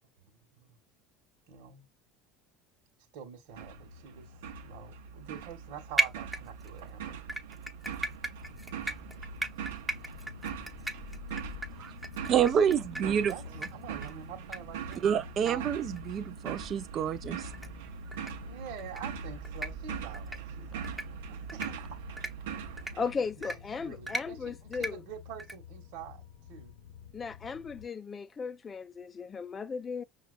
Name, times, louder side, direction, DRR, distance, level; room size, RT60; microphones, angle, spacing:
voice 1, 1.5-1.9 3.1-7.2 13.0-13.4 13.7-15.1 15.4-15.7 18.4-21.0 21.3-22.0 23.4-26.2 26.5-26.7, right 8 dB, 70° right, 1.3 m, -46 dB
sound 1, 3.5-23.1, right 7 dB, 85° right, 0.8 m, -42 dB
sound 2, 6.0-6.8 7.3-13.3 13.6-13.7 14.0-14.1 14.5-14.6 14.9-15.0 15.5-15.6 15.9-16.0 16.5-16.6 17.5-17.7 18.1-18.3 18.8-19.0 19.4-19.7 20.1-20.4 20.8-21.1 21.5-21.7 22.2-22.3 22.8-22.9 23.4-23.6 24.1-24.2 24.7-24.9 25.4-25.5, right 1 dB, 5° right, 1.0 m, -34 dB
sound 3, 8.4-27.9, left 7 dB, 80° left, 0.8 m, -49 dB
voice 2, 12.2-13.3 15.0-17.5, right 8 dB, 40° right, 0.6 m, -28 dB
voice 3, 22.9-25.0 27.1-30.0, left 5 dB, 25° left, 0.4 m, -36 dB
5.7 x 2.4 x 2.5 m
supercardioid pair, 105°, 0 cm